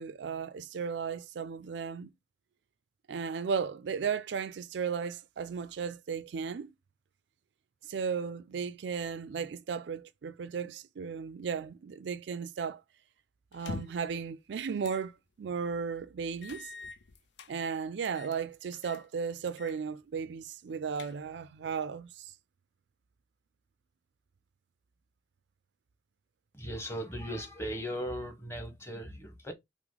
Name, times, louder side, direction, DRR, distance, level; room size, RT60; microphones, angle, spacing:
voice 1, 0.0-2.1 3.1-6.7 7.9-12.8 13.5-15.1 15.4-16.7 17.5-22.3, right 6 dB, 75° right, 0.4 m, -35 dB
sound 1, 13.5-14.1 14.8-15.1 15.5-15.6 16.4-17.5 18.0-18.4 18.7-19.1 19.5-19.8 20.1-20.2 20.7-21.5, left 4 dB, 80° left, 0.6 m, -44 dB
voice 2, 26.5-29.5, equal, 15° left, 1.2 m, -38 dB
5.7 x 2.1 x 4.0 m
head